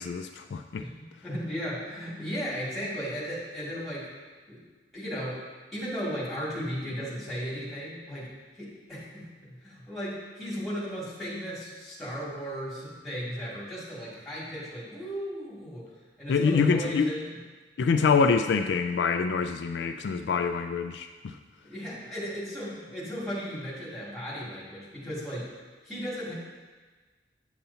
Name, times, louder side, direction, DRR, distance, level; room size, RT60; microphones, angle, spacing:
voice 1, 0.0-0.8 16.3-17.1 17.8-21.4, left 5 dB, 70° left, 7 dB, 0.3 m, -25 dB
voice 2, 0.7-4.1 4.5-4.6 4.9-5.4 5.7-8.3 8.6-15.8 16.2-17.2 21.6-25.5 25.8-26.3, equal, ahead, -8 dB, 2.3 m, -36 dB
9.1 x 6.7 x 2.8 m, 1.4 s
head